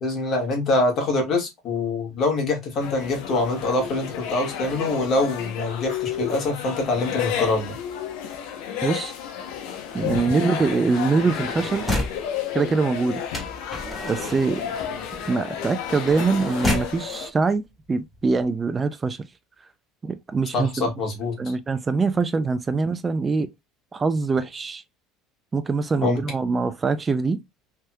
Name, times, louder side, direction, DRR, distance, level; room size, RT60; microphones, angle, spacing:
voice 1, 0.0-7.8 20.5-21.5 26.0-26.2, left 2 dB, 50° left, 1.5 m, -24 dB
sound 1, 2.8-17.3, left 9 dB, 80° left, 0.7 m, -32 dB
voice 2, 8.8-9.1 9.9-11.9 12.5-13.2 14.1-14.6 15.3-17.6 17.9-19.2 20.0-20.9 21.4-23.5 23.9-24.8 25.5-27.4, right 4 dB, 25° right, 0.3 m, -23 dB
sound 2, 10.9-12.2 13.3-17.0 17.8-17.9 18.1-18.4, left 1 dB, 5° left, 1.5 m, -31 dB
3.4 x 2.7 x 2.2 m
supercardioid pair, 105°, 0 cm